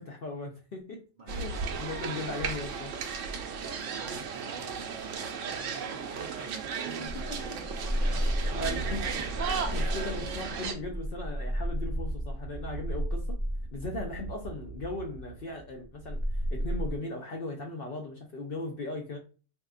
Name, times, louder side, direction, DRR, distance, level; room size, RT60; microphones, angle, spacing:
voice 1, 0.0-1.5 1.8-2.9 7.3-7.4 8.1-9.0 9.5-13.4 13.7-19.2, left 2 dB, 55° left, 1 dB, 0.7 m, -38 dB
sound 1, 1.3-10.7, right 6 dB, 90° right, 1.0 m, -35 dB
voice 2, 3.2-9.4, right 3 dB, 55° right, 1 dB, 0.5 m, -50 dB
sound 2, 7.1-17.0, equal, 15° right, 1.5 m, -33 dB
3.6 x 2.8 x 2.4 m, 0.35 s
omnidirectional pair, 1.3 m